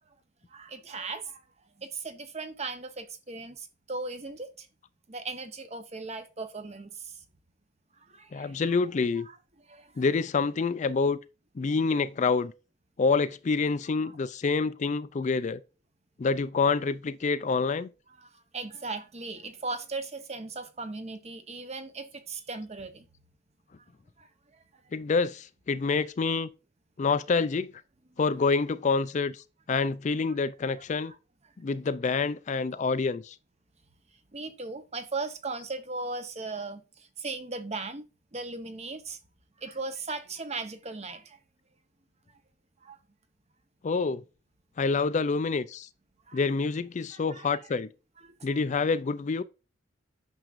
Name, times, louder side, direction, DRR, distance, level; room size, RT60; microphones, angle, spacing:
voice 1, 0.5-1.4 1.8-4.7 5.1-7.2 8.0-8.8 9.2-9.3 9.7-10.0 18.2-23.0 24.2-24.3 31.0-31.1 34.3-38.0 38.3-39.2 39.6-41.4 42.8-43.0 46.3-46.4 47.1-47.6 48.2-48.6, right 3 dB, 35° right, 0.9 m, -38 dB
voice 2, 8.3-9.3 10.0-11.2 11.6-12.5 13.0-15.6 16.2-17.9 24.9-26.5 27.0-27.7 28.2-31.1 31.6-33.4 43.8-44.2 44.8-45.9 46.3-47.9 48.4-49.4, left 4 dB, 40° left, 0.4 m, -27 dB
9.0 x 6.3 x 2.6 m
head